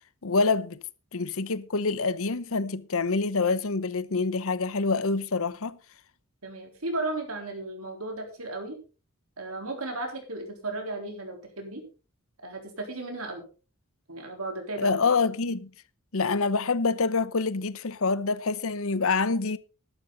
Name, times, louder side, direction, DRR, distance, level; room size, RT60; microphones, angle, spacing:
voice 1, 0.2-0.8 1.1-5.8 14.8-15.7 16.1-19.6, left 4 dB, 65° left, 0.9 m, -26 dB
voice 2, 6.4-8.8 9.4-11.8 12.4-13.4 14.1-15.0, right 2 dB, 70° right, 3.9 m, -35 dB
13.5 x 12.0 x 3.9 m
head